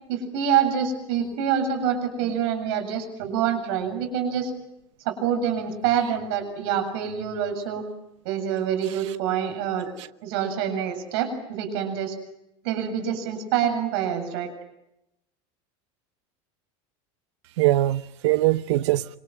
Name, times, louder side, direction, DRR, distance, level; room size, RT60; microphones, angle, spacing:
voice 1, 0.1-4.5 5.1-7.8 8.2-9.9 10.2-12.1 12.6-14.5, right 8 dB, 55° right, 7.5 m, -26 dB
voice 2, 8.8-9.2 10.0-10.1 17.6-19.2, right 16 dB, 75° right, 1.0 m, -23 dB
27.5 x 26.5 x 7.6 m
supercardioid pair, 180°, 15 cm